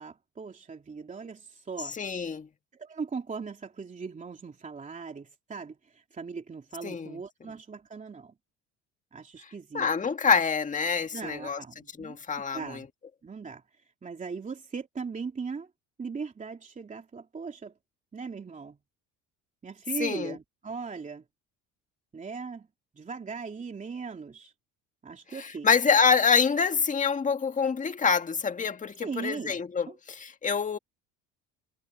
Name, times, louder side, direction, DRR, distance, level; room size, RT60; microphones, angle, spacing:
voice 1, 0.0-2.0 2.7-8.3 9.1-9.9 11.1-12.2 12.5-12.9 13.2-15.7 16.0-17.7 18.1-18.8 19.6-21.2 22.1-22.7 22.9-24.5 25.0-25.7 29.0-29.6 29.9-30.0, right 5 dB, 25° right, 3.2 m, -39 dB
voice 2, 2.0-2.5 6.8-7.1 9.7-11.6 12.0-12.8 20.0-20.4 25.4-30.8, left 6 dB, 25° left, 1.8 m, -26 dB
supercardioid pair, 100°, 30 cm